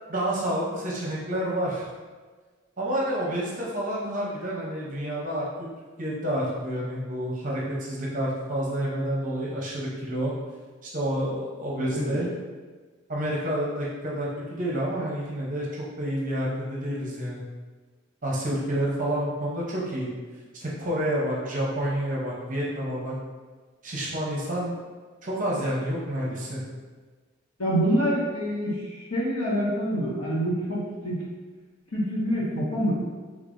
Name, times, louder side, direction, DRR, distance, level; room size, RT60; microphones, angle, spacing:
voice 1, 0.1-1.9 2.8-5.7 6.0-10.3 10.8-12.3 13.1-17.4 18.2-20.1 20.5-23.1 23.8-24.8 25.2-26.6, right 1 dB, 40° right, -4 dB, 0.8 m, -29 dB
voice 2, 27.6-31.2 31.9-32.9, equal, 85° left, -6 dB, 1.2 m, -26 dB
5.3 x 3.4 x 2.6 m, 1.4 s
head